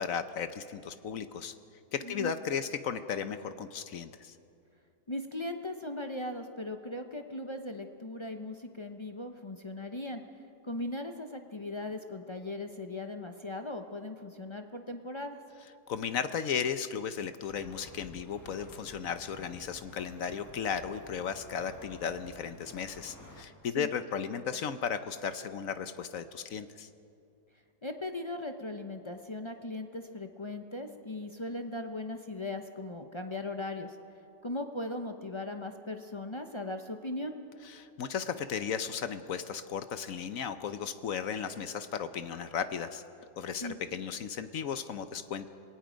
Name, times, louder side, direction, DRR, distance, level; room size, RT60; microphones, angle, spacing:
voice 1, 0.0-1.5 1.9-4.4 15.9-26.9 37.6-43.0 43.4-45.5, left 7 dB, 60° left, 11 dB, 1.0 m, -35 dB
voice 2, 5.1-10.2 10.6-15.4 23.7-23.9 27.8-34.0 34.4-37.4 43.6-43.8, left 2 dB, 35° left, 5 dB, 0.4 m, -38 dB
sound 1, 17.5-23.4, equal, 10° left, 1.5 m, -52 dB
27.0 x 18.5 x 5.2 m, 2.5 s
omnidirectional pair, 1.9 m